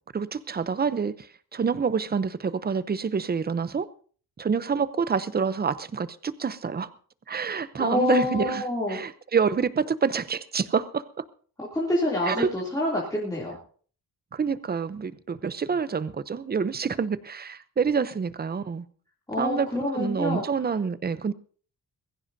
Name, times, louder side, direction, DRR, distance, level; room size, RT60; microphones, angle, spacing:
voice 1, 0.1-3.9 4.4-6.9 7.3-8.6 8.9-11.2 12.3-12.5 14.3-18.9 19.4-19.7 19.9-21.3, right 6 dB, 25° right, 0.6 m, -27 dB
voice 2, 7.8-9.0 11.6-13.5 19.3-20.4, left 2 dB, 10° left, 2.7 m, -27 dB
21.5 x 15.5 x 2.7 m
wide cardioid pair, 165°, 40 cm